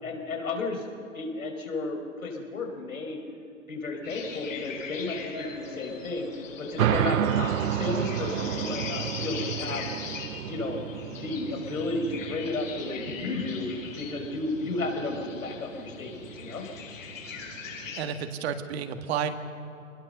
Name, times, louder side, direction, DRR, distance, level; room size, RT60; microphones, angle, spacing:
voice 1, 0.0-0.9 1.1-3.2 3.7-6.3 6.6-9.9 10.4-10.8 11.1-13.7 14.0-16.7, left 2 dB, 85° left, 2 dB, 5.1 m, -33 dB
sound 1, 4.0-18.0, left 5 dB, 65° left, 6.6 m, -40 dB
sound 2, 6.8-17.9, right 10 dB, 75° right, 0.7 m, -32 dB
voice 2, 18.0-19.3, right 8 dB, 50° right, 7 dB, 1.8 m, -31 dB
24.0 x 20.5 x 6.7 m, 2.7 s
hypercardioid pair, 130°, 41 cm